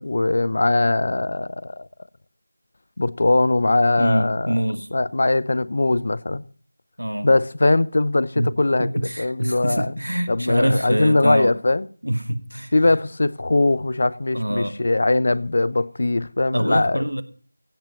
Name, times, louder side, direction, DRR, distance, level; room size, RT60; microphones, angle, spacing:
voice 1, 0.0-1.9 3.0-4.6 4.9-6.4 7.2-8.9 9.2-10.0 10.3-11.9 12.7-17.0, left 2 dB, 50° left, 0.7 m, -20 dB
voice 2, 4.0-4.9 7.0-7.3 8.4-8.5 8.8-11.5 12.0-12.7 14.3-14.8 16.5-17.2, right 1 dB, 90° right, 1.5 m, -25 dB
16.0 x 5.9 x 7.6 m
figure-of-eight pair, 170°, 0 cm